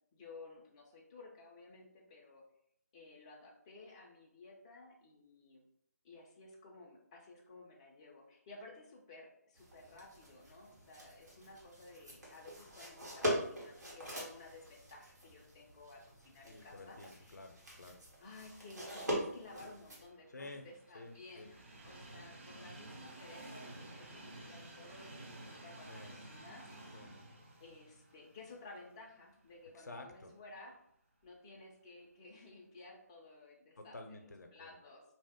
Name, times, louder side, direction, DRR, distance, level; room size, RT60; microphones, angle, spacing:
voice 1, 0.1-2.4 2.9-5.7 6.0-17.4 18.2-26.6 27.6-30.8 31.2-34.0 34.5-35.0, left 2 dB, 20° left, -1 dB, 0.4 m, -55 dB
sound 1, 9.6-20.1, equal, 85° right, 1.3 m, -43 dB
voice 2, 16.5-18.0 20.3-20.6 20.9-21.5 22.5-22.7 25.9-26.2 26.9-27.2 29.7-30.3 33.8-34.8, left 2 dB, 80° left, 5 dB, 0.5 m, -51 dB
Train, 19.5-29.6 30.0-30.1 31.2-31.3, right 1 dB, 45° right, 0.6 m, -53 dB
2.7 x 2.0 x 3.5 m, 0.70 s
figure-of-eight pair, 155°, 9 cm